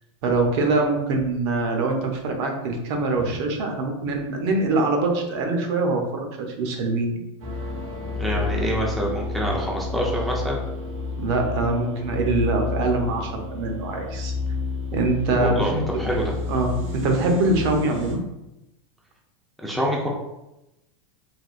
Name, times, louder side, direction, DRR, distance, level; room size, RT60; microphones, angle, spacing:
voice 1, 0.2-7.1 11.2-14.3 14.9-15.8 16.5-18.2, right 2 dB, 60° right, 3 dB, 0.7 m, -23 dB
sound 1, 7.4-18.1, left 3 dB, 80° right, 0.9 m, -30 dB
voice 2, 8.2-10.6 15.4-16.3 19.6-20.1, equal, ahead, -2 dB, 0.4 m, -26 dB
3.3 x 2.3 x 2.4 m, 0.92 s
supercardioid pair, 120°, 17 cm